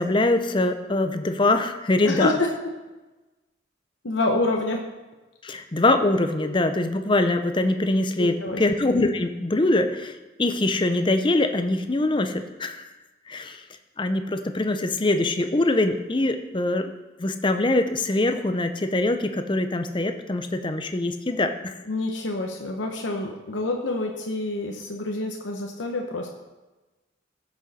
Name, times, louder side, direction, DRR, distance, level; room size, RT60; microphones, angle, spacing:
voice 1, 0.0-2.3 5.4-12.8 13.3-13.6 14.0-16.9 17.2-21.8, left 2 dB, 25° left, 8 dB, 0.6 m, -23 dB
voice 2, 2.0-2.5 4.0-4.8 6.4-6.6 8.2-8.6 21.9-26.3, left 2 dB, 80° left, 2 dB, 0.9 m, -27 dB
14.5 x 6.4 x 4.2 m, 1.1 s
head